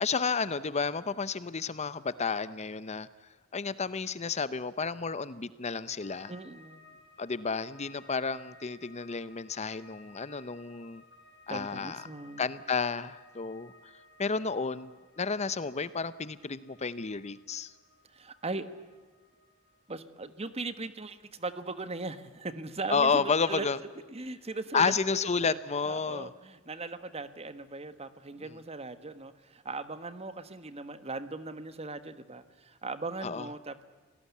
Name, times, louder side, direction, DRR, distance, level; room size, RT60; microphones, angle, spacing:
voice 1, 0.0-3.1 3.5-6.3 7.2-11.0 11.5-12.1 12.4-13.9 14.2-17.7 22.9-23.8 24.7-26.3 33.2-33.5, left 5 dB, 30° left, 16 dB, 0.7 m, -31 dB
sound 1, 6.0-23.1 23.4-24.1, left 2 dB, 50° left, 5.4 m, -59 dB
voice 2, 6.3-6.8 11.5-12.5 18.1-18.7 19.9-23.7 24.1-24.9 25.4-25.6 25.8-33.8, right 3 dB, 30° right, 12 dB, 1.4 m, -39 dB
27.5 x 18.5 x 8.4 m, 1.4 s
head